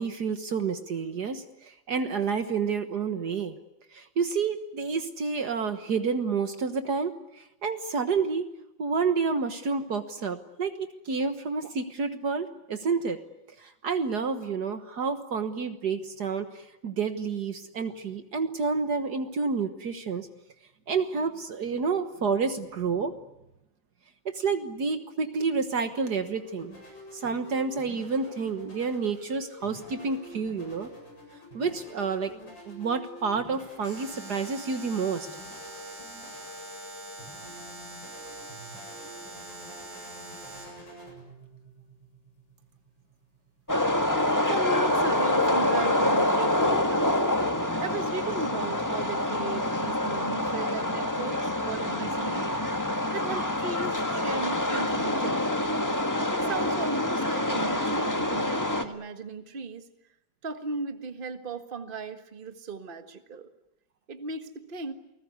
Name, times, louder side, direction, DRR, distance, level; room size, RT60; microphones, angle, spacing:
voice 1, 0.0-3.6 3.9-7.1 7.6-8.5 8.8-13.2 13.6-16.5 16.8-20.3 20.9-23.1 24.3-26.7 27.2-30.9 31.5-32.4 32.7-35.3, right 5 dB, 60° right, 8 dB, 1.9 m, -29 dB
sound 1, 25.6-43.9, equal, 70° left, 8.4 m, -48 dB
Alarm, 33.8-40.9, right 2 dB, 80° right, 6.0 m, -44 dB
sound 2, 43.7-58.8, left 1 dB, 10° left, 1.5 m, -26 dB
voice 2, 44.5-47.1 47.8-52.5 53.1-55.6 56.3-59.9 60.4-63.5 64.1-64.9, right 3 dB, 30° right, 8 dB, 1.7 m, -36 dB
29.5 x 20.0 x 9.6 m, 0.89 s
omnidirectional pair, 2.1 m